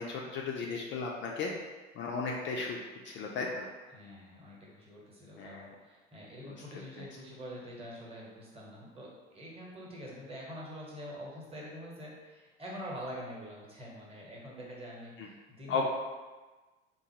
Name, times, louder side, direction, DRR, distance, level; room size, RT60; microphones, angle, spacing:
voice 1, 0.0-1.5 2.0-2.8 3.0-3.7 5.4-5.7 6.4-6.5 7.0-7.1 15.2-15.3 15.7-15.9, left 4 dB, 35° left, -1 dB, 0.4 m, -35 dB
voice 2, 3.9-15.9, equal, 15° right, -3 dB, 1.0 m, -45 dB
3.8 x 2.5 x 2.8 m, 1.2 s
figure-of-eight pair, 75°, 36 cm